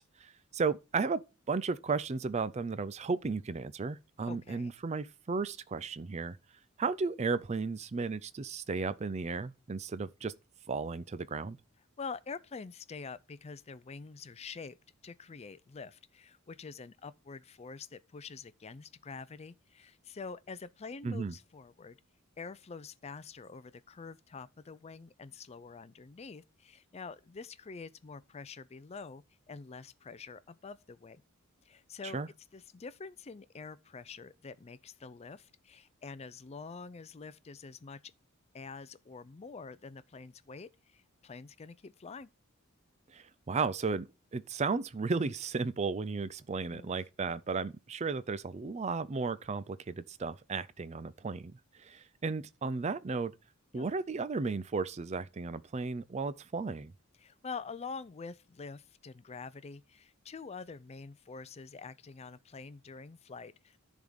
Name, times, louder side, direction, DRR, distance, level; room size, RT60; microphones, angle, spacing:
voice 1, 0.0-6.4 6.8-10.3 10.7-11.6 21.0-21.3 32.0-32.3 43.1-51.5 51.8-53.3 53.7-56.9, right 4 dB, 30° right, 0.4 m, -34 dB
voice 2, 4.3-4.7 12.0-14.8 15.0-22.0 22.4-31.2 31.6-32.2 32.5-38.1 38.5-42.3 46.7-47.0 53.7-53.9 57.2-63.8, left 4 dB, 30° left, 0.4 m, -46 dB
10.5 x 3.7 x 6.4 m
head